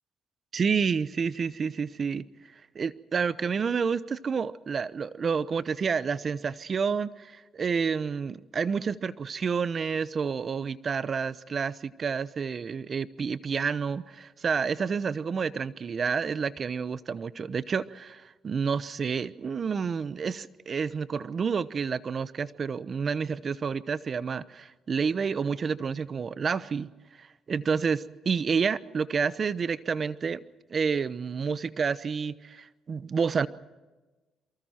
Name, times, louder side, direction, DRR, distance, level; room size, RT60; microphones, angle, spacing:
voice 1, 0.5-2.2 2.7-26.9 27.2-30.4 30.7-33.5, right 6 dB, 45° right, 16 dB, 0.9 m, -29 dB
29.0 x 23.5 x 4.5 m, 1.2 s
cardioid pair, 90°, 0 cm